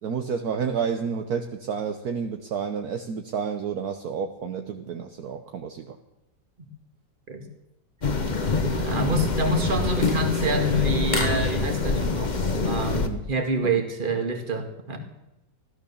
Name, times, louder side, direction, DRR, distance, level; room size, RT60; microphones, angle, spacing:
voice 1, 0.0-6.0 13.1-13.2, right 6 dB, 65° right, 6 dB, 1.4 m, -30 dB
sound 1, 8.0-13.1, left 3 dB, 30° left, 1.2 m, -25 dB
voice 2, 8.8-12.4 12.6-15.0, right 2 dB, 30° right, 5 dB, 2.1 m, -27 dB
15.5 x 12.0 x 7.0 m, 0.90 s
omnidirectional pair, 1.9 m